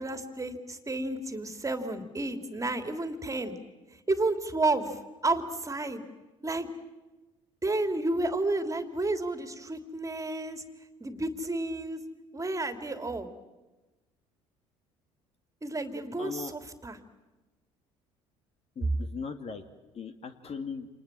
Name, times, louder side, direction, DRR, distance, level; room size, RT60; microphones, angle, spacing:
voice 1, 0.0-3.5 4.1-6.0 6.4-6.7 7.6-10.6 11.0-12.0 12.3-13.3 15.6-17.0, right 2 dB, 20° right, 8 dB, 2.9 m, -31 dB
voice 2, 16.2-16.5 18.8-19.6 19.9-20.9, left 5 dB, 40° left, 8 dB, 2.2 m, -38 dB
29.0 x 27.0 x 7.6 m, 1.1 s
figure-of-eight pair, 60°, 16 cm